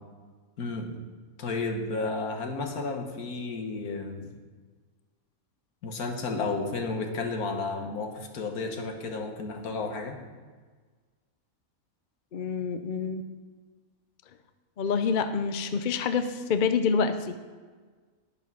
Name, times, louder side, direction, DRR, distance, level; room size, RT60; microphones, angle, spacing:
voice 1, 0.6-1.0 1.4-4.3 5.8-10.2, left 3 dB, 85° left, 4 dB, 1.8 m, -32 dB
voice 2, 12.3-13.2 14.8-17.3, left 5 dB, 50° left, 9 dB, 0.6 m, -27 dB
11.0 x 6.7 x 6.0 m, 1.5 s
omnidirectional pair, 1.5 m